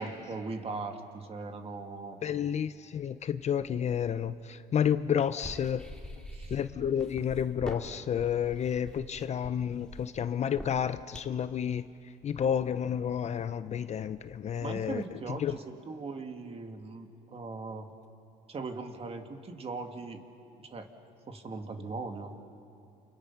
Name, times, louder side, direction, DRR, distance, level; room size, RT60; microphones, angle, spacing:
voice 1, 0.0-2.2 6.3-6.6 14.6-17.9 18.5-20.2 20.6-20.9 21.3-22.4, right 3 dB, 35° right, 2.1 m, -39 dB
voice 2, 2.2-5.9 6.5-11.9 12.2-15.6, left 8 dB, 40° left, 0.6 m, -30 dB
sound 1, 5.4-11.4, left 1 dB, 5° left, 2.4 m, -43 dB
29.0 x 28.5 x 5.9 m
cardioid pair, 110°, 17 cm